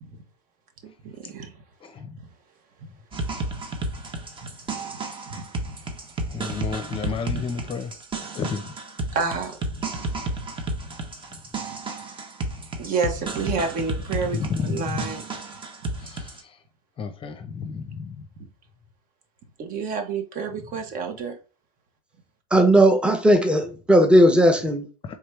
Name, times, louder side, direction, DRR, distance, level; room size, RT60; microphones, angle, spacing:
voice 1, 0.8-1.5 5.3-5.4 7.3-7.4 9.1-9.6 12.8-15.2 19.6-21.4, right 5 dB, 45° right, 1.2 m, -29 dB
voice 2, 1.8-2.1 6.3-7.9 8.3-8.7 14.4-15.0 16.0-16.3 17.0-18.2 25.0-25.2, left 5 dB, 25° left, 0.7 m, -31 dB
sound 1, 3.1-16.4, right 2 dB, 25° right, 1.1 m, -32 dB
voice 3, 22.5-24.9, right 1 dB, 5° right, 0.9 m, -17 dB
4.4 x 3.7 x 3.2 m
hypercardioid pair, 85°, 20 cm